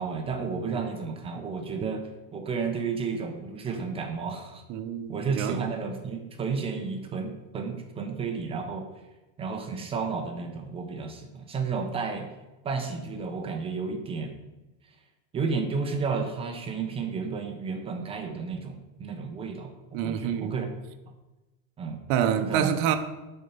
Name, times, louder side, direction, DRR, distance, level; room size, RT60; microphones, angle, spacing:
voice 1, 0.0-2.0 2.3-4.6 5.1-8.9 9.4-12.3 12.6-14.4 15.3-19.7 20.0-20.7 21.8-22.0 22.4-22.8, right 5 dB, 15° right, 0.6 m, -32 dB
voice 2, 4.7-5.6 19.9-20.6 22.1-23.0, right 9 dB, 40° right, 0.8 m, -27 dB
11.5 x 4.5 x 5.5 m
supercardioid pair, 170°, 39 cm